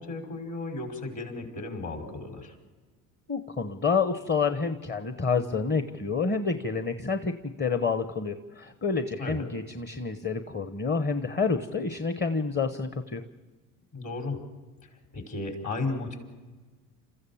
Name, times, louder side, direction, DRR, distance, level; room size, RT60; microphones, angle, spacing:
voice 1, 0.0-2.6 9.2-9.4 13.9-14.4 15.1-16.2, left 3 dB, 45° left, 3 dB, 5.4 m, -34 dB
voice 2, 3.3-13.2, left 5 dB, 25° left, 9 dB, 1.1 m, -28 dB
28.5 x 14.5 x 7.3 m, 1.3 s
hypercardioid pair, 70°, 41 cm